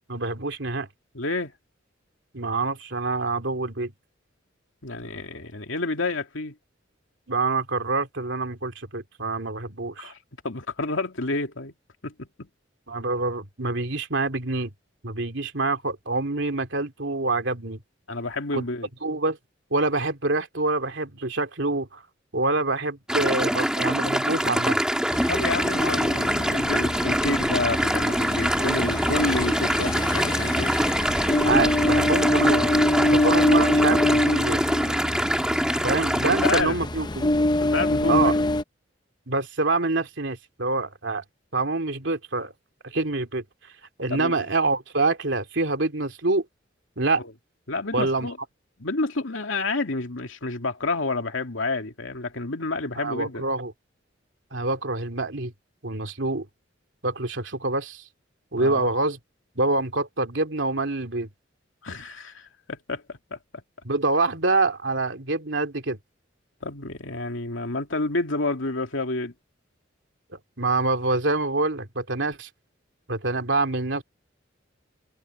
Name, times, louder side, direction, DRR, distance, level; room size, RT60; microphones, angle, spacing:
voice 1, 0.1-0.9 2.3-3.9 7.3-10.1 12.9-14.7 15.0-17.8 18.5-18.6 19.0-19.4 19.7-22.0 22.3-24.8 31.4-32.7 33.1-34.6 35.8-37.3 38.1-38.3 39.3-41.2 41.5-42.5 42.8-43.4 44.0-46.4 47.0-47.2 47.9-48.3 53.0-53.7 54.5-55.5 55.8-56.5 57.0-58.0 58.5-59.2 59.6-61.3 63.8-66.0 70.3-72.5 73.1-74.0, right 3 dB, 70° right, 3.0 m, -26 dB
voice 2, 1.1-1.5 4.8-6.5 10.0-10.2 10.4-11.7 12.0-12.5 18.1-18.9 25.3-30.8 33.0-33.2 35.7-35.8 36.2-36.8 37.6-38.3 44.1-44.3 47.2-47.3 47.7-48.4 48.8-53.4 58.6-58.9 61.8-63.4 66.6-69.3, left 2 dB, 85° left, 2.5 m, -29 dB
sound 1, 23.1-36.6, equal, 5° right, 2.5 m, -24 dB
Ocean, 25.1-38.6, left 1 dB, 20° left, 0.7 m, -25 dB
head